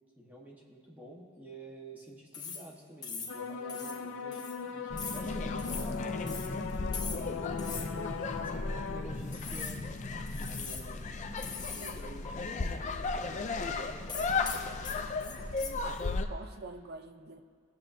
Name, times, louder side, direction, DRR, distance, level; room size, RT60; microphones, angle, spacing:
voice 1, 0.2-6.3 7.1-9.9 10.3-11.1 11.6-14.8, right 1 dB, 10° right, -3 dB, 1.4 m, -51 dB
sound 1, 2.3-2.7 3.0-3.4 3.7-4.0 4.3-4.6 5.0-5.3 5.6-5.9 6.3-6.5 6.9-7.3 7.6-7.9 8.3-8.4 9.3-9.8 10.3-10.9 11.4-12.0 12.2-12.3 14.1-15.7, left 5 dB, 20° left, 1.0 m, -41 dB
sound 2, 3.3-9.0, left 5 dB, 80° left, 0.6 m, -39 dB
sound 3, 4.9-16.3, left 3 dB, 35° left, 0.5 m, -35 dB
voice 2, 11.2-11.6 15.4-15.9 16.3-17.5, right 2 dB, 50° right, 6 dB, 0.6 m, -47 dB
21.0 x 7.6 x 2.7 m, 2.1 s
head